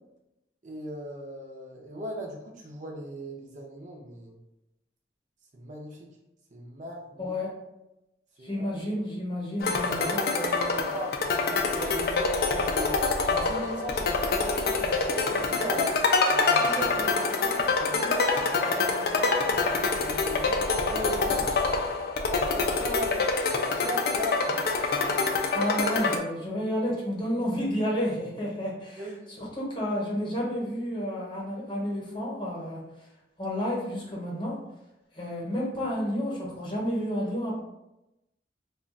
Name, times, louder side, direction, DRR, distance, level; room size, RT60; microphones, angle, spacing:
voice 1, 0.6-4.4 5.5-6.1 6.5-7.4 8.4-8.7 10.0-12.9 13.3-16.0 16.3-19.7 20.0-21.9 22.3-24.6 29.0-29.4, equal, 40° right, 0 dB, 0.6 m, -38 dB
voice 2, 7.2-7.5 8.4-10.2 25.5-29.1 29.4-32.8 33.4-34.6 35.1-37.6, equal, 25° left, -5 dB, 0.9 m, -30 dB
sound 1, 9.6-26.2, left 3 dB, 55° left, 0.3 m, -26 dB
2.4 x 2.2 x 3.7 m, 0.92 s
head